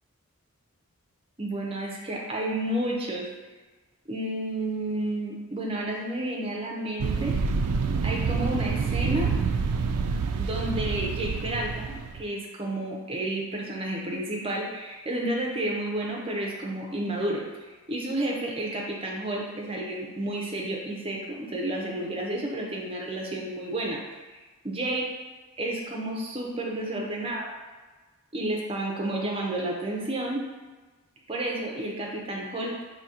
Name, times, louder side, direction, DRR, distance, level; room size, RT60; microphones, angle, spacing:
voice 1, 1.4-3.3 4.1-7.3 8.0-9.4 10.4-17.4 17.9-24.0 24.3-25.0 25.6-27.5 28.3-30.4 31.3-32.7, right 1 dB, 25° right, -1 dB, 0.6 m, -31 dB
sound 1, 7.0-12.3, right 5 dB, 85° right, 0.3 m, -27 dB
4.9 x 2.8 x 2.8 m, 1.3 s
head